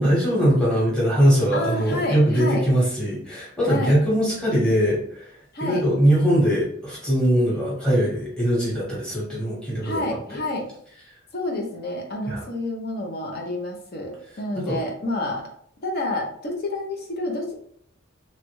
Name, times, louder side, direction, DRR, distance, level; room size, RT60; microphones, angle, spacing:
voice 1, 0.0-5.3 5.6-10.0 12.3-12.5 14.5-14.8, equal, 5° left, -7 dB, 1.2 m, -21 dB
voice 2, 1.5-2.6 3.7-4.0 5.5-5.8 9.8-10.7 11.3-15.5 15.8-17.5, left 1 dB, 50° left, 1 dB, 0.7 m, -29 dB
3.1 x 2.4 x 3.0 m, 0.63 s
head